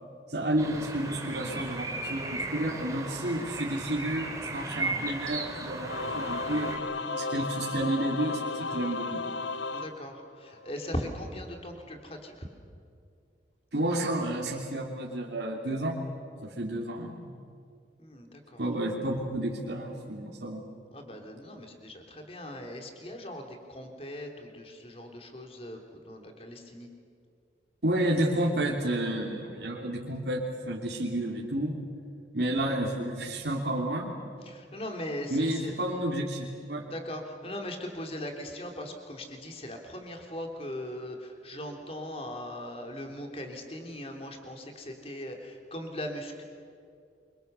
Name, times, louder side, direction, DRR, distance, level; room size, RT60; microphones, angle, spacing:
voice 1, 0.3-6.7 7.2-9.2 13.7-16.0 16.4-17.3 18.6-20.6 27.8-31.7 32.3-34.1 35.3-36.8, right 1 dB, 70° right, -2 dB, 3.0 m, -31 dB
sound 1, 0.6-6.8, right 2 dB, 20° right, 2.8 m, -36 dB
Singing / Musical instrument, 5.8-10.7, left 3 dB, 90° left, 0.9 m, -34 dB
voice 2, 9.7-12.5 18.0-18.6 20.9-26.9 34.5-35.7 36.9-46.4, left 1 dB, 35° left, 3 dB, 3.4 m, -39 dB
28.5 x 25.5 x 6.9 m, 2.4 s
head